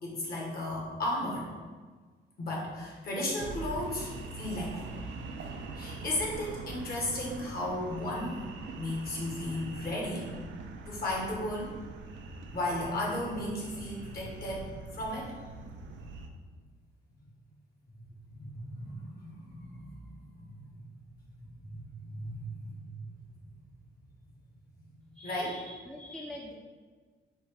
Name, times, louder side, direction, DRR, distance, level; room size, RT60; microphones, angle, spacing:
voice 1, 0.0-1.5 2.4-4.1 4.4-5.0 5.7-8.4 8.7-10.3 10.8-11.7 12.5-15.3 18.3-20.8 21.6-22.9 24.8-24.9 25.2-25.5, left 1 dB, 50° left, -3 dB, 1.5 m, -35 dB
sound 1, 3.4-16.3, right 3 dB, 70° right, 0.5 m, -43 dB
voice 2, 25.1-26.5, left 1 dB, 5° left, -2 dB, 0.5 m, -44 dB
4.3 x 2.6 x 4.6 m, 1.5 s
cardioid pair, 90°, 20 cm